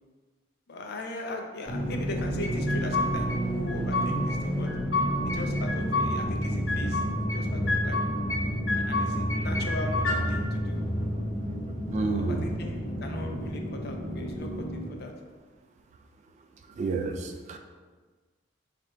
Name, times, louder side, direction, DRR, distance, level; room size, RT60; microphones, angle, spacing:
voice 1, 0.7-4.7 5.2-8.0 8.8-10.8 12.0-15.1, left 2 dB, 60° left, 2 dB, 0.5 m, -39 dB
sound 1, 1.7-14.8, equal, 20° left, 1.1 m, -30 dB
sound 2, 2.4-3.4 3.7-4.4 4.7-6.1 6.4-7.4 7.7-8.4 8.7-10.2, left 2 dB, 85° left, 1.1 m, -30 dB
voice 2, 11.9-12.4 16.8-17.6, right 3 dB, 40° right, 4 dB, 0.3 m, -29 dB
3.3 x 2.5 x 4.3 m, 1.4 s
head